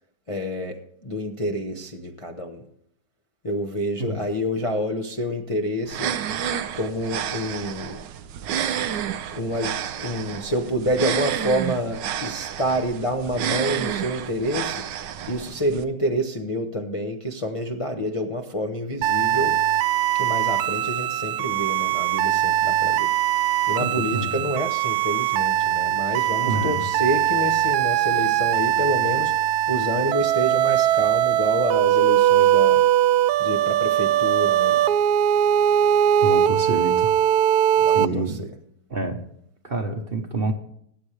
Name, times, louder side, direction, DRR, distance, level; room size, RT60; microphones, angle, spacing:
voice 1, 0.3-2.7 3.4-6.2 6.7-8.1 9.3-14.8 15.3-19.6 20.1-23.1 23.7-32.8 33.4-34.8 37.8-38.5, equal, 25° left, 2 dB, 0.7 m, -28 dB
sound 1, 5.9-15.8, right 9 dB, 90° right, 1.4 m, -30 dB
sound 2, 19.0-38.1, right 11 dB, 75° right, 1.0 m, -21 dB
voice 2, 23.8-24.4 26.5-26.8 36.2-37.1 37.9-38.4 38.9-39.2 39.6-40.5, right 2 dB, 40° right, 5 dB, 1.1 m, -27 dB
19.0 x 8.6 x 3.3 m, 0.71 s
omnidirectional pair, 1.9 m